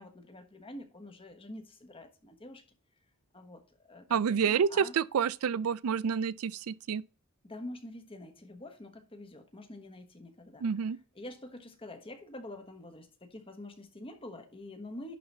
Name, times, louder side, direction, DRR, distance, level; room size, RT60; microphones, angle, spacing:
voice 1, 0.0-2.6 3.3-4.9 7.4-10.6 11.1-15.2, left 1 dB, 25° left, 1.3 m, -46 dB
voice 2, 4.1-7.0 10.6-11.0, right 7 dB, 90° right, 0.4 m, -28 dB
11.0 x 4.0 x 4.3 m
head